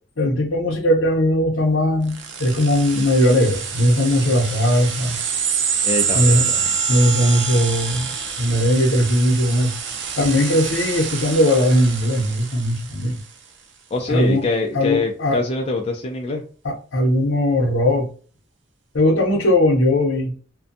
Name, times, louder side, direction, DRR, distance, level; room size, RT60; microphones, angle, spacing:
voice 1, 0.2-5.2 6.1-6.5 6.9-8.1 8.4-9.7 10.2-13.2 14.1-14.4 14.7-15.4 16.6-18.1 18.9-20.3, left 1 dB, 75° left, 0.7 m, -18 dB
sound 1, 2.1-13.2, right 6 dB, 65° right, 0.5 m, -26 dB
voice 2, 5.8-6.7 13.9-16.4, left 3 dB, 30° left, 0.3 m, -24 dB
2.5 x 2.2 x 2.6 m
head